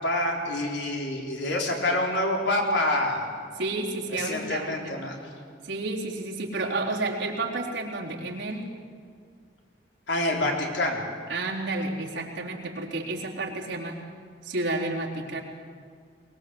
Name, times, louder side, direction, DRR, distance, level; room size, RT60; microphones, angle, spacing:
voice 1, 0.0-3.3 4.1-5.2 10.1-11.0, left 1 dB, 75° left, 0 dB, 3.9 m, -27 dB
voice 2, 3.6-4.8 5.6-8.7 11.3-14.0 14.4-15.4, right 2 dB, 85° right, -3 dB, 3.9 m, -31 dB
23.0 x 20.5 x 8.0 m, 2.1 s
head